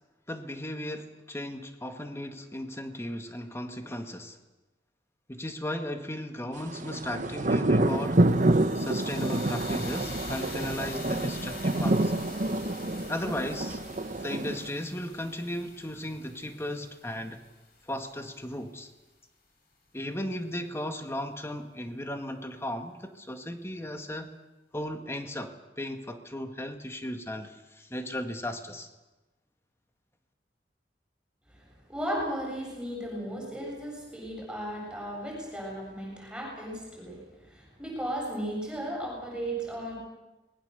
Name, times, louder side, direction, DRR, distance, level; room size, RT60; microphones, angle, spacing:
voice 1, 0.3-4.4 5.3-8.2 8.8-12.1 13.1-13.8 14.2-17.4 17.8-18.9 19.9-24.3 24.7-28.9, left 1 dB, 15° left, 6 dB, 1.8 m, -36 dB
sound 1, 6.6-14.7, right 2 dB, 45° right, 1.1 m, -27 dB
sound 2, 7.9-18.0, left 3 dB, 60° left, 6.7 m, -45 dB
voice 2, 31.6-39.9, right 1 dB, 5° right, -2 dB, 7.3 m, -35 dB
25.5 x 20.5 x 6.9 m, 1.1 s
head